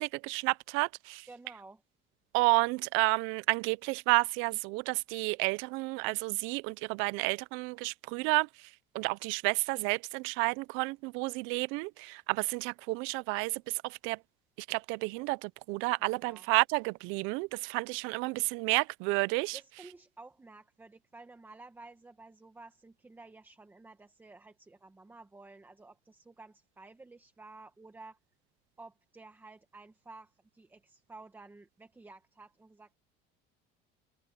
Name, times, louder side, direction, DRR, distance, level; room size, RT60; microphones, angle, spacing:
voice 1, 0.0-1.3 2.3-8.5 8.9-14.2 14.7-19.6, right 26 dB, 85° right, 0.5 m, -31 dB
voice 2, 1.3-1.8 16.2-16.4 19.5-28.2 28.8-32.9, right 3 dB, 10° right, 1.4 m, -53 dB
open air
cardioid pair, 160°, 20 cm